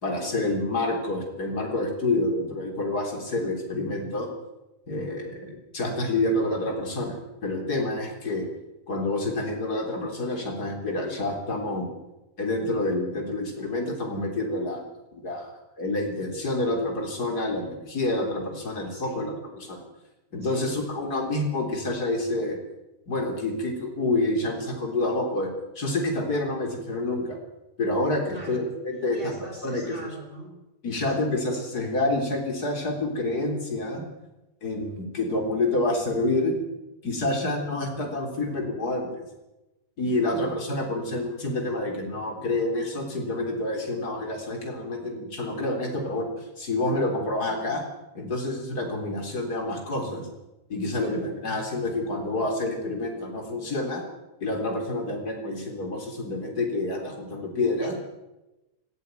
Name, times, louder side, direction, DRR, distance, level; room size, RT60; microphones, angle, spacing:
voice 1, 0.0-4.3 4.9-7.2 7.4-8.5 8.9-11.9 12.4-14.8 15.1-15.5 15.8-19.3 19.6-19.8 20.3-22.6 23.1-25.5 25.8-27.4 27.8-29.9 30.8-34.0 34.6-36.6 37.0-39.2 40.0-47.8 48.1-50.3 50.7-54.0 54.4-57.9, left 2 dB, 65° left, 3 dB, 4.3 m, -28 dB
voice 2, 18.9-19.3 20.4-20.8 28.3-28.7 29.1-30.5 31.1-31.4 40.2-40.4 51.0-51.3, right 1 dB, 30° right, 1 dB, 5.8 m, -42 dB
17.5 x 16.5 x 9.3 m, 1.0 s
omnidirectional pair, 1.8 m